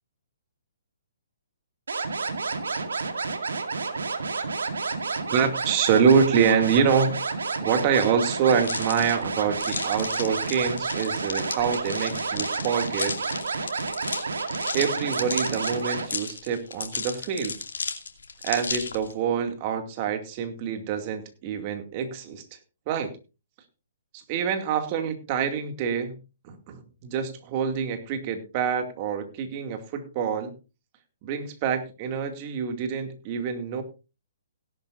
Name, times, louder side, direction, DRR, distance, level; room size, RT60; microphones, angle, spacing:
sound 1, 1.9-16.1, right 4 dB, 75° right, 2.2 m, -30 dB
voice 1, 5.3-13.2 14.7-17.6 18.4-22.4 22.9-23.1 24.1-26.2 26.4-30.5 31.2-33.8, right 7 dB, 35° right, 7 dB, 2.4 m, -26 dB
sound 2, 8.6-19.1, left 4 dB, 75° left, 2.5 m, -34 dB
17.5 x 11.5 x 2.6 m, 0.30 s
hypercardioid pair, 135°, 0 cm